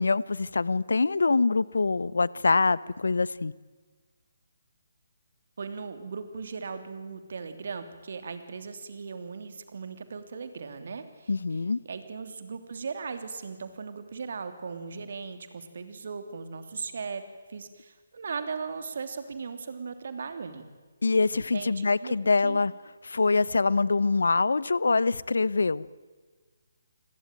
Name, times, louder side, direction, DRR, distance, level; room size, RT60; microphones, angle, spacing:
voice 1, 0.0-3.5 11.3-11.8 21.0-22.7 23.0-25.9, left 3 dB, 70° left, 0.8 m, -24 dB
voice 2, 5.6-17.2 17.5-20.6 21.3-22.2 22.4-22.6, right 5 dB, 55° right, 3.0 m, -38 dB
29.5 x 21.5 x 9.2 m
figure-of-eight pair, 145°, 0 cm